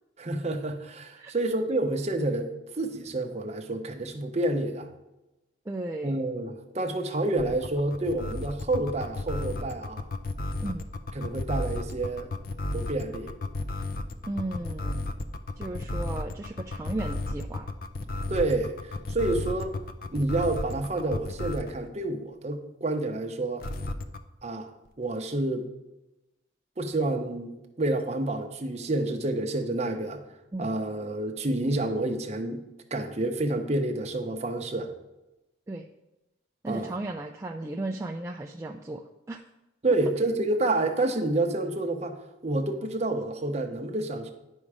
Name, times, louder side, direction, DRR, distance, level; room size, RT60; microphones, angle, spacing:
voice 1, 0.2-2.5 2.8-4.9 6.0-10.1 11.1-12.3 12.7-13.3 18.3-19.8 20.1-23.7 24.4-24.7 25.0-25.7 26.8-30.2 30.6-32.6 32.9-34.9 36.7-36.9 39.8-42.1 42.4-44.3, right 2 dB, 35° right, 4 dB, 0.8 m, -29 dB
voice 2, 5.7-6.2 10.6-10.9 14.3-15.0 15.6-17.7 30.5-30.7 35.7-35.9 36.6-39.4, right 2 dB, 15° right, 1 dB, 0.3 m, -35 dB
sound 1, 7.4-21.8 23.6-24.2, left 2 dB, 50° left, 0.5 m, -32 dB
9.9 x 5.4 x 4.8 m, 0.97 s
head